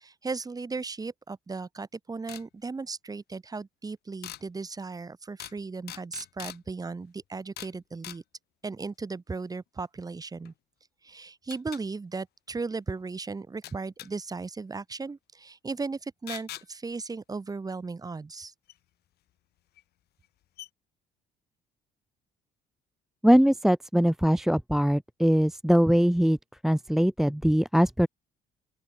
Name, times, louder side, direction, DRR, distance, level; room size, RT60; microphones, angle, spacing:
voice 1, 0.0-8.2 8.6-10.5 11.0-18.5, right 4 dB, 20° right, 3.4 m, -36 dB
sound 1, 2.3-2.4 4.2-4.4 5.4-5.6 5.9-6.6 7.6-7.8 8.0-8.2 10.4-10.5 11.5-11.8 13.6-14.1 16.3-16.7 18.7-18.8 19.8-19.9 20.2-20.3 20.6-20.7, left 14 dB, 70° left, 3.4 m, -41 dB
voice 2, 23.2-26.4 26.6-28.1, equal, ahead, 0.8 m, -22 dB
open air
cardioid pair, 110°, 17 cm